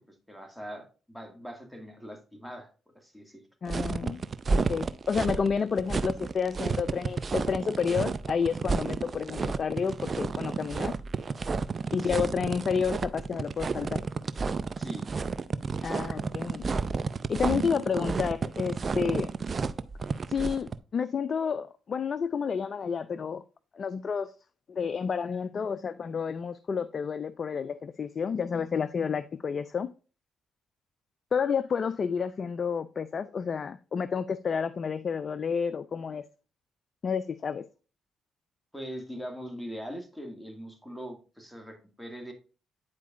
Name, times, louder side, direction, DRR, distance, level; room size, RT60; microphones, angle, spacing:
voice 1, 0.1-2.7 2.9-3.4 12.0-12.3 14.8-15.1 18.0-18.1 38.7-42.3, equal, ahead, 2.1 m, -41 dB
voice 2, 3.6-4.2 4.5-10.9 11.9-14.0 15.8-16.7 17.3-19.3 20.3-23.4 23.7-24.3 24.7-29.9 31.3-36.3 37.0-37.6, left 6 dB, 50° left, 0.4 m, -30 dB
sound 1, 3.7-20.7, right 4 dB, 45° right, 0.5 m, -31 dB
9.7 x 4.6 x 2.5 m
hypercardioid pair, 50°, 0 cm